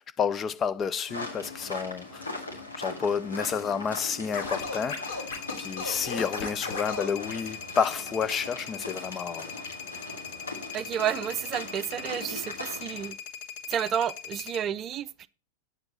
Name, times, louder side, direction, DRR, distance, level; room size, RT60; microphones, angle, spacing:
voice 1, 0.0-2.3 2.7-5.3 5.6-9.7, left 6 dB, 25° left, 0.4 m, -30 dB
sound 1, 1.1-13.1, left 2 dB, 80° left, 2.5 m, -40 dB
Scratching (performance technique), 4.3-7.1, left 4 dB, 60° left, 3.2 m, -35 dB
sound 2, 4.5-14.6, left 7 dB, 45° left, 1.3 m, -41 dB
voice 2, 10.7-13.1 13.7-15.3, right 9 dB, 30° right, 0.5 m, -31 dB
9.5 x 7.8 x 4.1 m
figure-of-eight pair, 90°, 0 cm